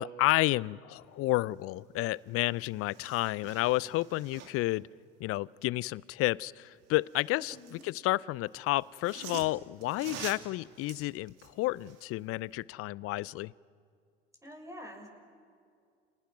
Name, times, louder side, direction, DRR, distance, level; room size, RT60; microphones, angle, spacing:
voice 1, 0.0-4.9 5.2-13.5, left 18 dB, 45° left, 23 dB, 0.6 m, -31 dB
sound 1, 2.2-2.3 2.5-4.8 6.9-8.0 8.8-12.1 12.5-12.6, right 8 dB, 55° right, 2.7 m, -47 dB
voice 2, 7.5-7.8 14.4-15.1, equal, 10° right, 2 dB, 6.6 m, -46 dB
30.0 x 25.0 x 6.1 m, 2.3 s
hypercardioid pair, 75°, 31 cm